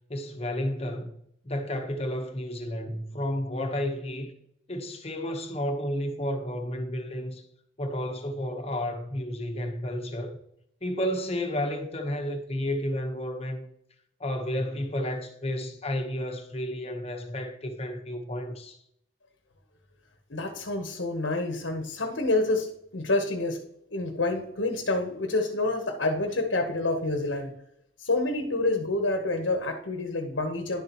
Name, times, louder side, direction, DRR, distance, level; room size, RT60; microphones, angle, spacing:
voice 1, 0.1-1.1 1.4-4.3 4.7-7.4 7.8-10.4 10.8-13.7 14.2-18.8, left 1 dB, 30° left, 1.1 m, -31 dB
voice 2, 20.3-23.6 23.9-27.5 28.0-30.8, left 2 dB, 65° left, 1.1 m, -28 dB
11.0 x 6.9 x 3.0 m
head